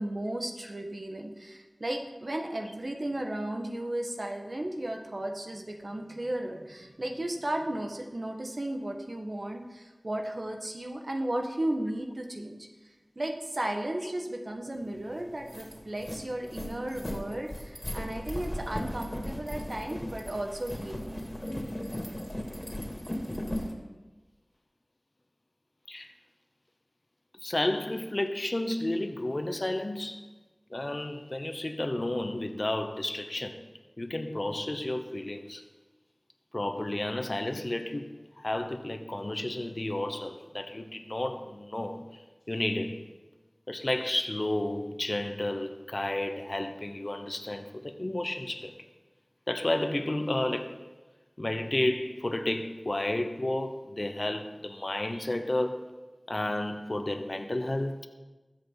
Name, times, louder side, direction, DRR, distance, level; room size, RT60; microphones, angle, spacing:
voice 1, 0.0-12.7 13.1-21.2, right 1 dB, 65° right, 1.7 m, -34 dB
sound 1, 14.9-15.0 15.3-23.7, left 1 dB, 30° left, 2.6 m, -37 dB
voice 2, 27.4-30.3 30.7-33.6 34.0-35.6 36.5-43.1 43.7-48.7 49.5-50.8 51.4-55.8 56.3-58.1, left 1 dB, 50° left, 1.0 m, -32 dB
20.5 x 7.7 x 4.1 m
wide cardioid pair, 40°, 0 cm